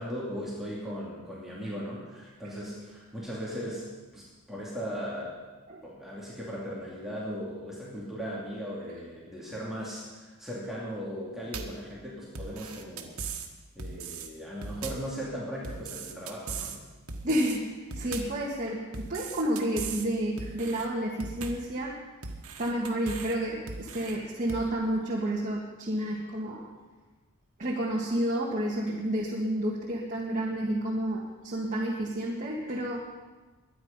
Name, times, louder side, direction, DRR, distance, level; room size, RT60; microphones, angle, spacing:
voice 1, 0.0-3.9 4.1-5.4 5.8-13.2 13.7-16.8, equal, ahead, -7 dB, 2.9 m, -38 dB
sound 1, 11.5-11.8 12.4-13.5 13.8-14.3 14.6-15.1 15.6-16.8 17.1-17.6 17.9-18.4 18.9-20.1 20.4-20.9 21.2-21.7 22.2-23.4 23.7-24.2 24.5-24.7, right 4 dB, 70° right, 1.6 m, -39 dB
voice 2, 17.2-22.0 22.6-26.7 27.6-33.1, right 1 dB, 35° right, -4 dB, 1.7 m, -30 dB
22.5 x 9.8 x 5.5 m, 1.3 s
head